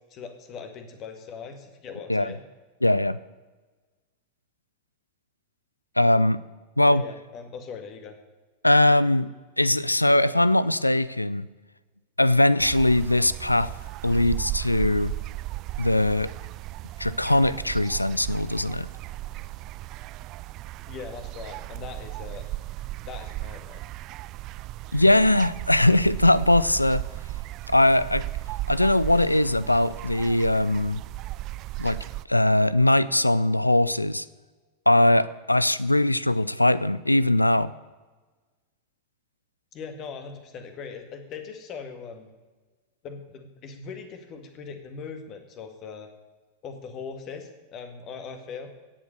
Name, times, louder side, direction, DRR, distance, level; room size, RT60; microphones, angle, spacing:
voice 1, 0.1-2.4 6.9-8.2 20.9-22.5 23.1-23.8 39.7-42.3 43.0-46.1 46.6-48.7, left 5 dB, 35° left, 6 dB, 1.9 m, -40 dB
voice 2, 2.8-3.2 6.0-6.4 6.8-7.0 8.6-9.3 9.6-11.5 12.2-13.7 14.0-15.1 15.8-16.3 17.0-18.9 24.9-27.0 27.7-28.2 28.7-31.0 31.8-32.0 32.3-34.2 34.9-37.7, left 1 dB, 85° left, 19 dB, 0.4 m, -21 dB
sound 1, 12.6-32.3, right 17 dB, 40° right, 0.3 m, -36 dB
17.0 x 7.5 x 6.6 m, 1.3 s
figure-of-eight pair, 90°, 0 cm